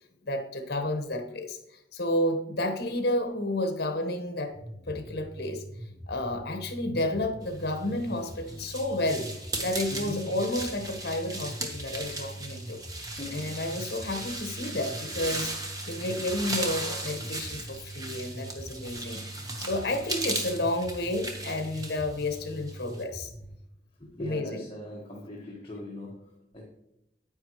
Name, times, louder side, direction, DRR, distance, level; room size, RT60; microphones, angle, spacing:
voice 1, 0.2-4.5 4.9-5.6 6.1-9.3 9.6-12.8 13.3-15.5 15.9-19.2 19.6-23.3 24.2-24.6, left 1 dB, 60° left, 6 dB, 1.2 m, -31 dB
sound 1, 4.5-23.5, right 1 dB, 40° right, 1.2 m, -43 dB
sound 2, 7.9-23.0, right 2 dB, 20° right, 1.3 m, -37 dB
voice 2, 9.9-10.3 13.2-13.5 24.0-26.7, left 1 dB, 30° left, -3 dB, 1.5 m, -40 dB
9.8 x 8.9 x 3.1 m, 0.82 s
head